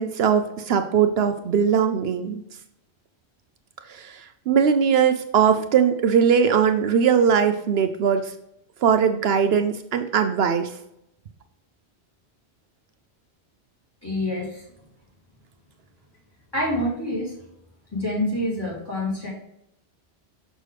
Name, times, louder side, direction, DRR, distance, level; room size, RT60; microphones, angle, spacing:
voice 1, 0.0-2.4 3.9-8.3 8.8-10.7, right 7 dB, 75° right, 8 dB, 0.8 m, -20 dB
voice 2, 14.0-14.6 16.5-17.3 17.9-19.3, left 1 dB, 20° left, -5 dB, 3.0 m, -26 dB
6.5 x 6.2 x 3.3 m, 0.81 s
omnidirectional pair, 1.1 m